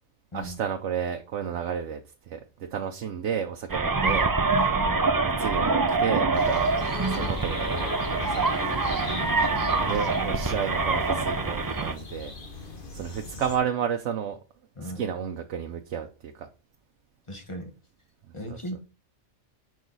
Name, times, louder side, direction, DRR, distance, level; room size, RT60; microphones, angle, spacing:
voice 1, 0.3-4.8 5.4-8.5 9.9-14.4 14.8-16.5 18.5-18.6, right 8 dB, 80° right, 1.0 m, -32 dB
sound 1, 3.7-11.9, right 3 dB, 35° right, 0.3 m, -25 dB
voice 2, 4.7-5.0 7.1-7.4 9.0-9.4 14.8-15.0 17.3-17.7 18.3-18.8, equal, 25° left, 1.2 m, -37 dB
sound 2, 6.3-13.6, left 5 dB, 50° left, 1.3 m, -38 dB
sound 3, 6.7-11.1, left 7 dB, 80° left, 1.3 m, -44 dB
6.3 x 4.7 x 3.9 m
omnidirectional pair, 1.2 m